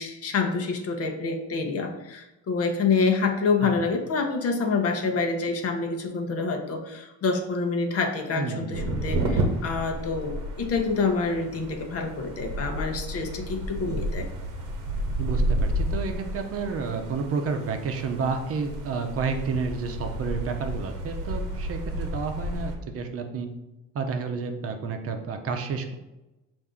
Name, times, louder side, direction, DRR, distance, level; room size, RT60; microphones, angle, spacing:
voice 1, 0.0-14.3, left 4 dB, 50° left, 4 dB, 0.8 m, -27 dB
voice 2, 8.3-8.9 15.2-23.5 23.9-25.9, right 5 dB, 50° right, 5 dB, 0.7 m, -30 dB
sound 1, 8.7-22.8, right 1 dB, 85° right, 0.8 m, -31 dB
5.5 x 2.6 x 3.6 m, 0.99 s
cardioid pair, 110°, 30 cm